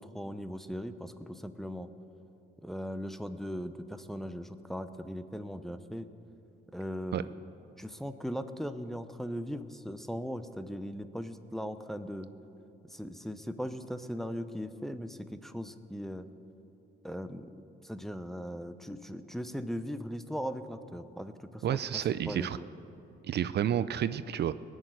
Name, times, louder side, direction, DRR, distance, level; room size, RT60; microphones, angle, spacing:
voice 1, 0.0-1.9 2.6-6.1 6.7-7.3 7.8-12.3 12.9-16.3 17.0-17.5 17.8-22.6, equal, ahead, 9 dB, 0.7 m, -39 dB
voice 2, 21.6-22.6 23.3-24.5, right 10 dB, 55° right, 14 dB, 0.5 m, -30 dB
19.5 x 6.6 x 9.3 m, 2.8 s
cardioid pair, 90°, 20 cm